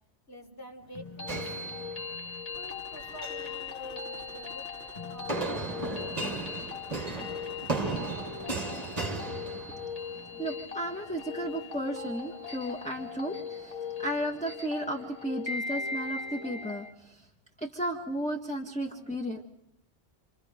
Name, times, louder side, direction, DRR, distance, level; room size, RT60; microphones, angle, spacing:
voice 1, 0.3-1.4 2.5-4.7 5.1-6.4 10.2-10.5, left 1 dB, 60° left, -1 dB, 4.8 m, -47 dB
sound 1, 1.0-16.9, left 5 dB, 35° left, 1.3 m, -39 dB
sound 2, 1.3-2.4 3.0-3.5 5.3-10.1, right 3 dB, 35° right, 1.5 m, -35 dB
sound 3, 2.5-8.6, left 1 dB, 80° left, 2.9 m, -52 dB
voice 2, 10.1-17.3 17.6-19.4, right 1 dB, 5° left, 1 dB, 1.5 m, -34 dB
29.0 x 24.5 x 5.1 m, 0.83 s
omnidirectional pair, 1.2 m